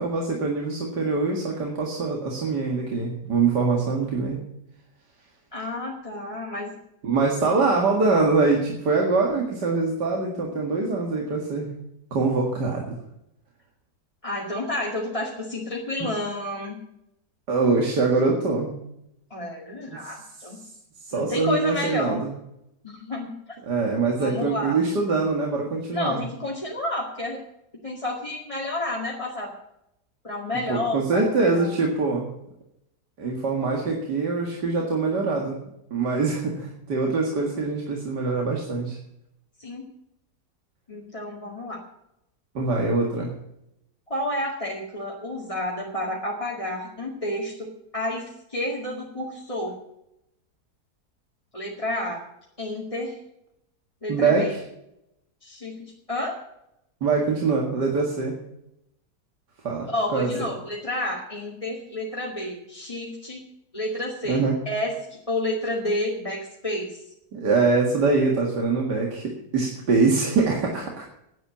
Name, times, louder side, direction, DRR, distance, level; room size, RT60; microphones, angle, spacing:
voice 1, 0.0-4.4 7.0-11.7 12.1-13.0 16.0-16.1 17.5-18.7 21.1-22.3 23.7-26.2 30.7-32.3 33.2-35.6 35.9-39.0 42.5-43.3 54.1-54.6 57.0-58.4 59.6-60.3 64.3-64.6 67.3-71.1, right 4 dB, 80° right, 0 dB, 2.5 m, -23 dB
voice 2, 5.5-6.7 14.2-16.8 19.3-20.6 21.1-22.2 22.8-23.3 24.2-24.8 25.9-27.4 27.8-29.5 30.2-31.7 39.6-39.9 40.9-41.8 44.1-48.2 48.5-49.8 51.5-52.2 52.6-53.1 54.0-54.5 55.4-56.4 59.8-63.4 63.7-67.0, left 1 dB, 20° left, -4 dB, 2.2 m, -30 dB
11.0 x 9.0 x 8.4 m, 0.82 s
omnidirectional pair, 1.8 m